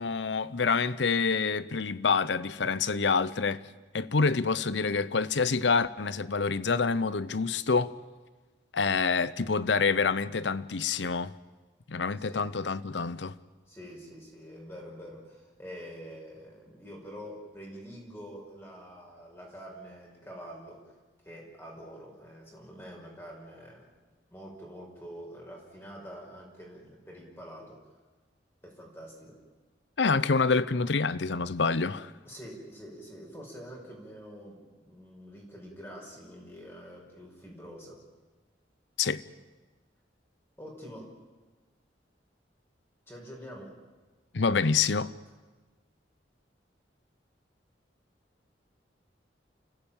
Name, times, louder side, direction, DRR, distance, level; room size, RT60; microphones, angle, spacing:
voice 1, 0.0-3.6 3.9-7.9 8.7-11.3 11.9-13.3 30.0-32.1 39.0-39.2 44.3-45.1, left 4 dB, 85° left, 0.8 m, -27 dB
voice 2, 12.2-12.5 13.7-20.9 21.2-23.9 24.3-27.8 28.6-29.4 32.2-38.0 40.6-41.1 43.1-43.8, equal, 15° left, 5.5 m, -46 dB
29.5 x 15.5 x 8.9 m
head